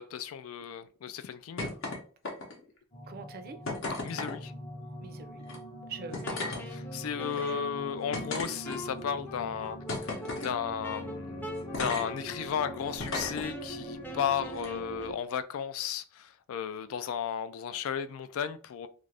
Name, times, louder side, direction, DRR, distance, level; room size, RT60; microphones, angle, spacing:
voice 1, 0.0-1.7 4.0-4.5 6.7-18.9, left 8 dB, 85° left, 0.3 m, -34 dB
sound 1, 1.6-2.0 2.2-2.7 3.7-4.4 5.4-5.6 6.1-6.6 7.3-7.4 8.1-9.0 9.9-10.5 11.7-12.0 13.0-13.5 14.5-14.7, left 2 dB, 65° left, 0.8 m, -34 dB
sound 2, 2.9-15.1, right 1 dB, 25° left, 0.8 m, -43 dB
voice 2, 3.1-3.6 5.0-6.4 7.1-7.6, right 4 dB, 45° right, 0.4 m, -45 dB
Wind instrument woodwind instrument, 6.2-15.2, left 1 dB, 10° left, 0.5 m, -45 dB
2.5 x 2.5 x 3.3 m
head